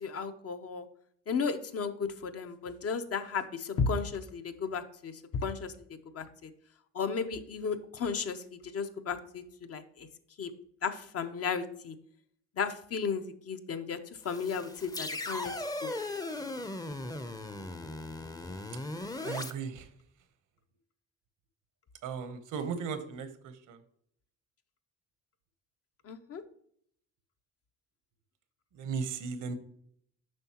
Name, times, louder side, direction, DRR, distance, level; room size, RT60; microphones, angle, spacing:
voice 1, 0.0-0.8 1.3-5.1 5.4-5.7 6.1-6.5 6.9-8.4 8.6-9.8 10.4-10.5 10.8-11.9 12.6-14.0 14.2-15.5 15.8-15.9 26.1-26.4, left 5 dB, 50° left, 8 dB, 0.8 m, -34 dB
sound 1, 14.2-19.5, left 2 dB, 10° left, 0.6 m, -38 dB
voice 2, 19.2-19.9 22.0-23.8 28.7-29.5, right 6 dB, 80° right, 10 dB, 1.0 m, -36 dB
7.7 x 5.4 x 2.9 m, 0.66 s
cardioid pair, 90°, 30 cm